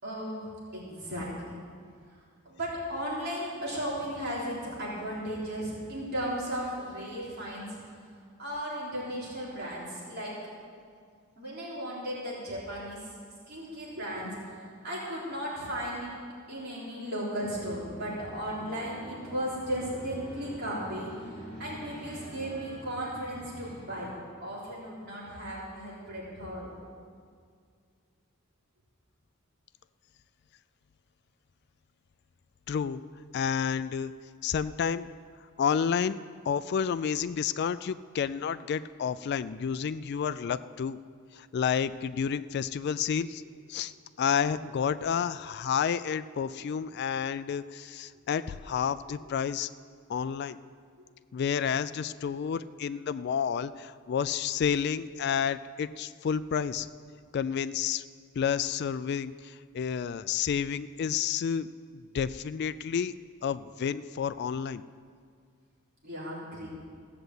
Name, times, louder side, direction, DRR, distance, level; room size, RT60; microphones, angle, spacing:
voice 1, 0.0-1.5 2.5-7.8 8.4-10.3 11.4-13.0 13.5-16.1 16.5-21.1 21.6-24.1 24.4-26.7 66.0-66.7, equal, 50° right, -6 dB, 3.8 m, -35 dB
sound 1, 17.4-24.1, equal, 30° left, 4.3 m, -46 dB
voice 2, 32.7-33.0 33.3-34.1 34.4-35.1 35.6-36.2 36.5-41.0 41.3-43.4 43.7-43.9 44.2-49.7 50.1-50.6 51.3-56.9 57.3-58.0 58.4-61.7 61.9-63.1 63.4-64.8, left 7 dB, 50° left, 13 dB, 0.3 m, -30 dB
15.5 x 6.7 x 7.9 m, 2.1 s
head